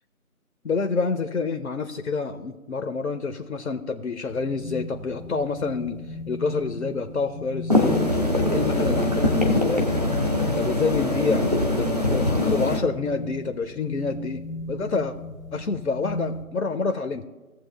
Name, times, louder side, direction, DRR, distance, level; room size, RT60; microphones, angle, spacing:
voice 1, 0.6-8.0 8.4-9.8 10.4-11.5 11.8-14.4 14.7-15.1 15.5-17.3, left 4 dB, 70° left, 8 dB, 0.8 m, -28 dB
sound 1, 4.3-16.4, left 1 dB, 65° right, 2.2 m, -37 dB
sound 2, 7.7-12.8, left 1 dB, 25° right, 0.8 m, -22 dB
17.0 x 7.5 x 2.3 m, 1.2 s
figure-of-eight pair, 165°, 44 cm